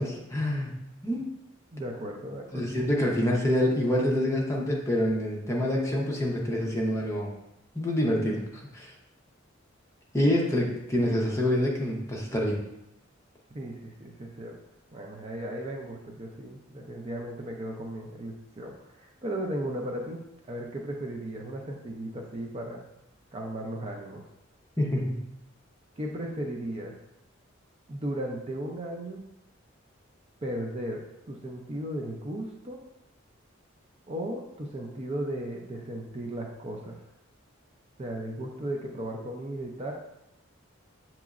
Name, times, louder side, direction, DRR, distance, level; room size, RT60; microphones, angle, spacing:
voice 1, 0.0-1.3 2.5-7.3 7.7-8.9 10.1-12.6 24.8-25.2, left 1 dB, 15° left, -2 dB, 0.7 m, -27 dB
voice 2, 1.7-2.8 13.5-14.5 14.9-20.2 20.5-22.8 23.3-24.2 26.0-27.0 27.9-29.3 30.4-31.0 31.3-32.8 34.1-37.0 38.0-39.9, right 1 dB, 30° right, 1 dB, 0.4 m, -36 dB
6.8 x 3.0 x 2.4 m, 0.84 s
head